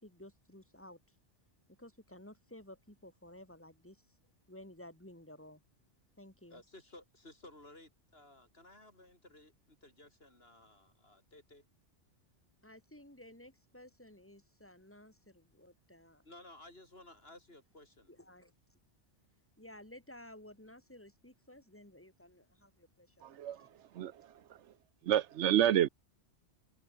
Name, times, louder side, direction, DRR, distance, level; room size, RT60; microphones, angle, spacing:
voice 1, 0.0-1.0 1.8-4.0 4.5-5.6 6.2-6.6 12.6-16.2 18.1-18.5 19.6-23.8, left 1 dB, 10° left, 4.0 m, -55 dB
voice 2, 6.5-11.6 16.2-18.1, left 1 dB, 55° left, 5.4 m, -56 dB
voice 3, 23.2-23.6 24.0-24.1 25.1-25.9, right 11 dB, 80° right, 1.0 m, -28 dB
omnidirectional pair, 1.2 m